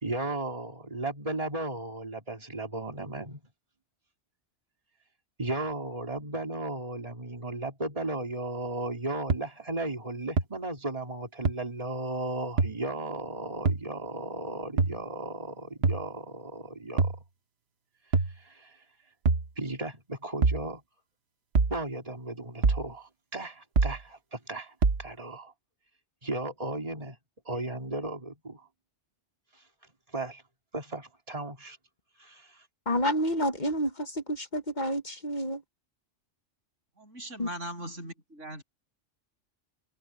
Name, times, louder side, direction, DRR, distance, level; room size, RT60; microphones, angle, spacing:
voice 1, 0.0-3.4 5.4-17.2 18.4-18.8 19.6-20.8 21.7-25.5 26.2-27.2 27.4-28.7 30.1-30.4 30.7-31.8 32.2-32.6, right 2 dB, 30° right, 3.5 m, -35 dB
sound 1, 9.3-9.4 10.4-10.5 11.4-11.5 12.6-12.7 13.6-13.8 14.8-15.0 15.8-16.0 17.0-17.2 18.1-18.3 19.2-19.5 20.4-20.6 21.5-21.8 22.6-22.9 23.8-24.0 24.8-25.0, right 4 dB, 60° right, 1.4 m, -24 dB
voice 2, 32.9-35.6 37.4-37.5, equal, 40° left, 1.3 m, -29 dB
voice 3, 37.0-38.6, right 1 dB, 90° right, 8.3 m, -40 dB
omnidirectional pair, 1.2 m